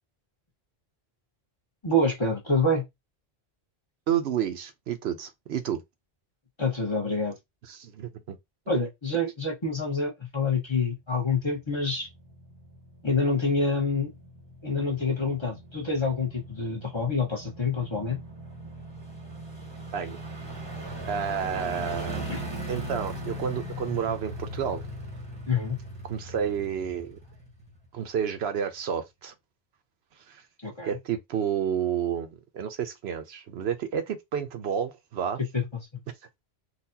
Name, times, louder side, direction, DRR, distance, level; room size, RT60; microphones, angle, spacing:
voice 1, 1.8-2.8 6.6-7.4 8.7-12.1 13.0-14.1 14.6-18.2 21.9-22.0 22.3-22.4 25.5-25.8 30.6-31.0 35.5-36.0, left 3 dB, 25° left, 1.2 m, -27 dB
voice 2, 4.1-5.8 7.7-8.4 19.9-20.2 21.1-22.2 22.7-24.8 26.0-27.2 27.9-29.3 30.3-30.4 30.9-35.4, right 8 dB, 75° right, 0.9 m, -30 dB
sound 1, 11.5-28.1 28.4-28.5, right 1 dB, 25° right, 1.0 m, -39 dB
4.0 x 2.4 x 2.7 m
omnidirectional pair, 1.1 m